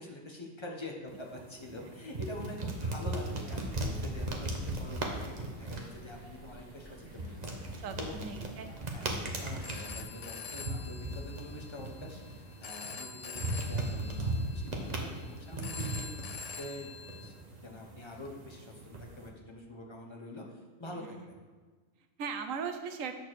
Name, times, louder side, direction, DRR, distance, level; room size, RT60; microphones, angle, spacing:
voice 1, 0.0-8.2 8.9-17.3 17.6-21.4, left 1 dB, 25° left, 0 dB, 1.1 m, -45 dB
sound 1, 1.1-19.3, right 2 dB, 35° right, 1.0 m, -38 dB
sound 2, 3.4-10.0, right 1 dB, 45° left, 2.9 m, -52 dB
voice 2, 7.8-9.1 20.9-21.3 22.2-23.1, right 6 dB, 90° right, 7 dB, 1.2 m, -39 dB
Telephone, 9.4-17.3, left 5 dB, 65° left, 0.3 m, -46 dB
8.5 x 4.6 x 6.3 m, 1.4 s
omnidirectional pair, 1.3 m